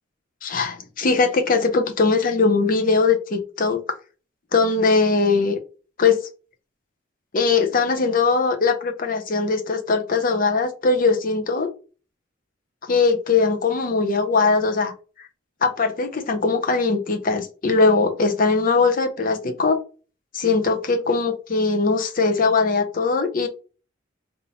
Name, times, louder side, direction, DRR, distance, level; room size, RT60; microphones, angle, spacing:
voice 1, 0.4-3.8 4.5-5.6 6.0-6.2 7.3-11.7 12.9-14.9 15.6-19.8 20.3-23.5, left 4 dB, 45° left, 0.7 m, -20 dB
3.7 x 2.6 x 4.1 m
head